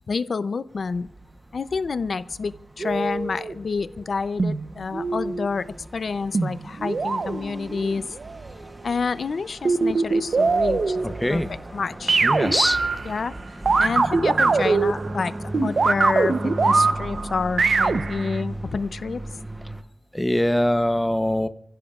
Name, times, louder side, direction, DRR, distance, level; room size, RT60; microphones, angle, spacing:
voice 1, 0.1-1.1 1.5-5.7 5.9-8.2 8.8-11.0 11.3-12.1 13.0-15.3 15.6-19.2, left 4 dB, 65° left, 13 dB, 0.5 m, -28 dB
sound 1, 0.7-19.8, right 1 dB, 15° right, 0.9 m, -37 dB
sound 2, 2.8-3.5 4.4-5.5 6.3-8.4 9.7-11.5 12.1-13.4 13.7-18.4, right 4 dB, 55° right, 0.7 m, -23 dB
voice 2, 11.0-11.5 12.2-12.8 20.1-21.5, left 1 dB, 5° left, 10 dB, 0.8 m, -22 dB
29.5 x 16.0 x 2.4 m, 0.64 s
wide cardioid pair, 135°, 0 cm